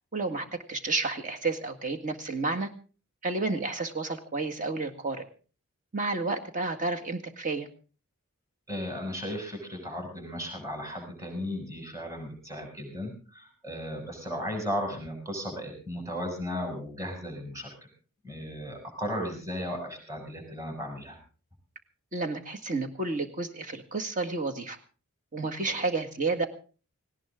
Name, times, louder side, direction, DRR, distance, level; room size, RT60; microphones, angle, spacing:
voice 1, 0.1-2.7 3.2-5.2 5.9-7.7 22.1-24.8 25.3-26.5, right 3 dB, 35° right, 5 dB, 1.9 m, -31 dB
voice 2, 8.7-17.7 18.2-21.2 25.6-25.8, equal, 15° right, 2 dB, 6.6 m, -35 dB
18.5 x 17.5 x 3.8 m, 0.38 s
head